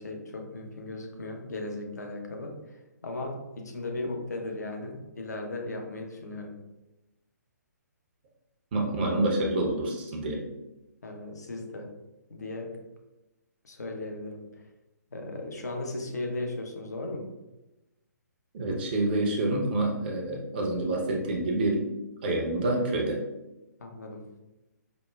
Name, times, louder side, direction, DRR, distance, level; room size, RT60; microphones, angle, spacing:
voice 1, 0.0-6.5 11.0-11.9 12.3-12.8 13.6-14.6 15.1-17.3 23.8-24.3, left 2 dB, 65° left, 2 dB, 0.7 m, -37 dB
voice 2, 8.7-10.5 18.5-21.9 22.2-23.2, right 2 dB, 35° right, 0 dB, 0.7 m, -27 dB
5.0 x 2.1 x 2.2 m, 0.99 s
figure-of-eight pair, 135°, 10 cm